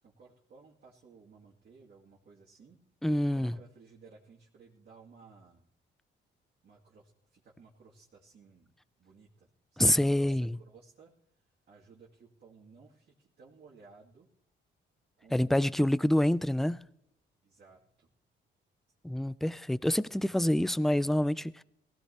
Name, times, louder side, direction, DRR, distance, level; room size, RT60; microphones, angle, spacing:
voice 1, 0.0-2.8 3.2-5.6 6.6-8.7 9.0-14.3 15.2-15.9 17.4-18.1, right 4 dB, 55° right, 2.4 m, -57 dB
voice 2, 3.0-3.6 9.8-10.6 15.3-16.8 19.0-21.6, left 1 dB, ahead, 0.4 m, -27 dB
18.5 x 16.5 x 2.9 m
cardioid pair, 90°, 20 cm